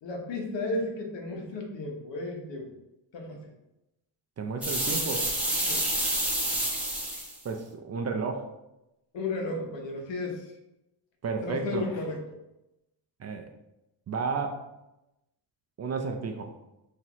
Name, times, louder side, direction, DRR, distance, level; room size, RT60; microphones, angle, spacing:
voice 1, 0.0-2.7 3.1-3.4 5.6-5.9 9.1-10.5 11.4-12.4, left 2 dB, 75° left, 2 dB, 1.1 m, -34 dB
voice 2, 4.4-5.2 7.4-8.4 11.2-11.9 13.2-13.5 14.1-14.6 15.8-16.5, right 4 dB, 35° right, 4 dB, 0.5 m, -32 dB
sound 1, 4.6-7.4, right 1 dB, 5° right, 0.9 m, -28 dB
5.8 x 2.8 x 3.0 m, 0.93 s
cardioid pair, 145°, 44 cm